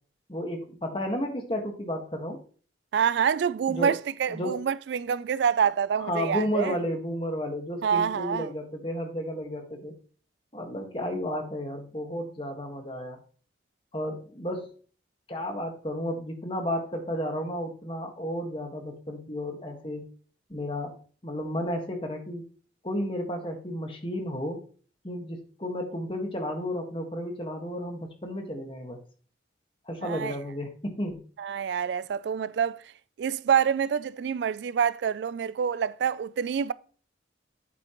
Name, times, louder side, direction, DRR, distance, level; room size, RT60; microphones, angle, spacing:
voice 1, 0.3-2.4 3.7-4.0 4.3-4.7 5.6-5.7 6.0-10.0 10.5-13.2 13.9-14.7 15.3-20.1 20.5-21.0 21.2-22.5 22.8-24.6 25.0-29.0 29.9-31.2, equal, 30° left, 1.6 m, -32 dB
voice 2, 2.9-6.8 7.8-8.5 30.0-30.3 31.4-32.8 33.2-36.7, right 7 dB, 70° right, 0.3 m, -26 dB
8.4 x 8.3 x 3.0 m
head